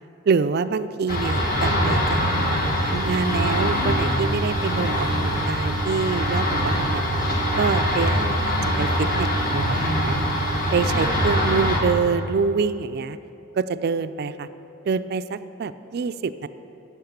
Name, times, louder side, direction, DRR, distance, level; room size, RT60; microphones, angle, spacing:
voice 1, 0.3-2.3 2.9-7.0 7.6-10.2 10.7-13.2 13.6-14.5 14.9-16.5, right 5 dB, 50° right, 13 dB, 0.3 m, -26 dB
sound 1, 1.1-11.8, equal, 45° left, 1.6 m, -23 dB
10.5 x 7.1 x 8.0 m, 2.9 s
head